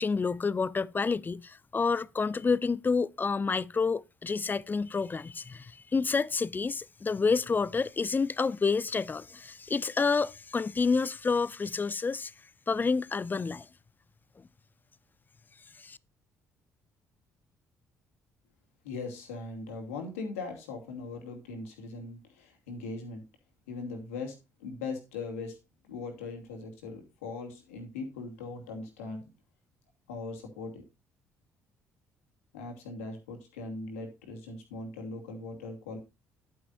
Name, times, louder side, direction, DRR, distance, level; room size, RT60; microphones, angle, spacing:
voice 1, 0.0-12.3 12.7-13.7 15.8-16.0, left 4 dB, 25° left, 0.6 m, -29 dB
voice 2, 18.8-23.2 23.7-25.6 25.8-29.2 30.1-30.8 32.5-36.0, left 3 dB, 75° left, 2.5 m, -40 dB
11.0 x 9.4 x 2.6 m
figure-of-eight pair, 45°, 8 cm